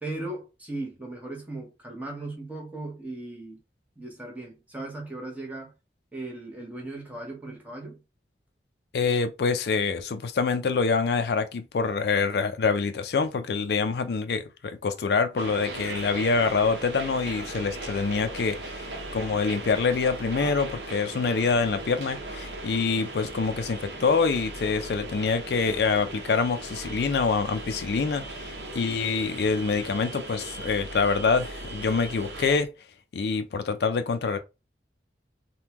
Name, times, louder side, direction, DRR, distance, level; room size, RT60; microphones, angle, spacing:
voice 1, 0.0-3.6 4.0-5.7 6.1-8.0, right 2 dB, 10° right, 0.9 m, -37 dB
voice 2, 8.9-32.7 33.1-34.4, left 4 dB, 60° left, 0.4 m, -26 dB
sound 1, 15.4-32.6, right 2 dB, 70° right, 0.8 m, -38 dB
3.4 x 2.2 x 2.9 m
head